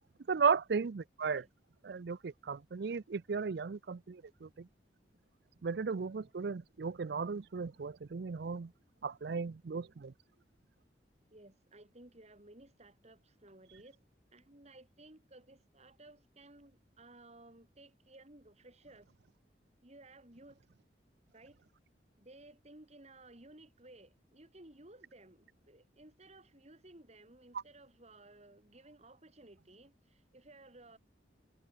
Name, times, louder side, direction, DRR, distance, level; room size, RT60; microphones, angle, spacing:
voice 1, 0.3-1.4 1.8-4.7 5.6-8.7 9.0-10.1, right 5 dB, 65° right, 0.5 m, -35 dB
voice 2, 11.3-14.0 14.3-19.1 19.8-20.6 21.3-21.6 22.2-31.0, right 2 dB, 40° right, 4.1 m, -57 dB
head